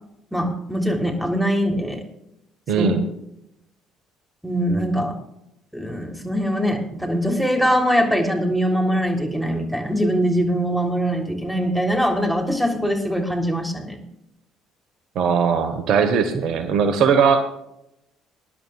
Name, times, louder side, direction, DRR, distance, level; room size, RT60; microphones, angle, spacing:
voice 1, 0.3-2.0 2.8-3.0 4.4-5.1 5.7-14.0, equal, ahead, 3 dB, 3.3 m, -22 dB
voice 2, 2.7-3.0 15.1-17.4, right 6 dB, 60° right, 9 dB, 1.3 m, -19 dB
22.5 x 11.0 x 2.4 m, 0.81 s
hypercardioid pair, 55°, 0 cm